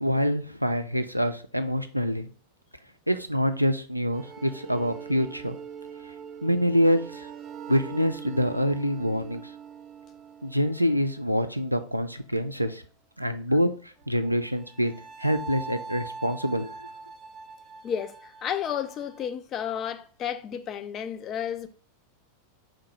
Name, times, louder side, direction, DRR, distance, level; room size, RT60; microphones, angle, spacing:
voice 1, 0.0-2.3 3.1-5.6 6.4-7.3 7.7-9.4 10.4-12.8 13.2-13.7 14.1-14.9 15.2-16.9, equal, 90° right, 0.3 m, -26 dB
sound 1, 4.1-12.1 14.0-19.3, right 6 dB, 25° right, 0.5 m, -43 dB
voice 2, 17.8-21.7, left 9 dB, 30° left, 0.4 m, -32 dB
3.8 x 2.7 x 4.5 m
figure-of-eight pair, 90°, 0 cm